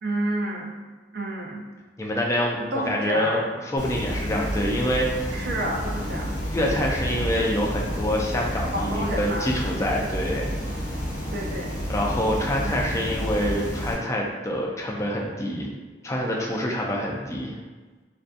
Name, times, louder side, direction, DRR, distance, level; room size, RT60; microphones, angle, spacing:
voice 1, 0.0-0.8 1.1-1.7 2.7-3.5 5.3-6.4 8.7-9.5 11.3-11.8 12.7-12.8, right 1 dB, 60° right, -1 dB, 0.5 m, -30 dB
voice 2, 2.0-5.4 6.5-10.9 11.9-15.7 16.0-17.6, equal, 15° left, -2 dB, 0.4 m, -26 dB
sound 1, 3.8-13.9, equal, 60° left, 1.0 m, -30 dB
2.6 x 2.2 x 2.4 m, 1.3 s
head